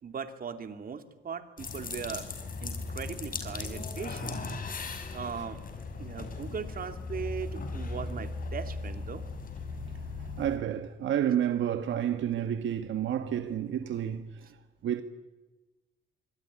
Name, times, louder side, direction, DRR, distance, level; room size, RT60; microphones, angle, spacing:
voice 1, 0.0-2.3 2.6-4.5 5.1-5.6 6.0-9.2, right 6 dB, 45° right, 2.9 m, -39 dB
sound 1, 1.6-10.6, left 3 dB, 45° left, 6.2 m, -37 dB
voice 2, 10.4-14.3 14.8-15.0, right 10 dB, 70° right, 1.6 m, -30 dB
26.0 x 23.0 x 10.0 m
cardioid pair, 90°, 20 cm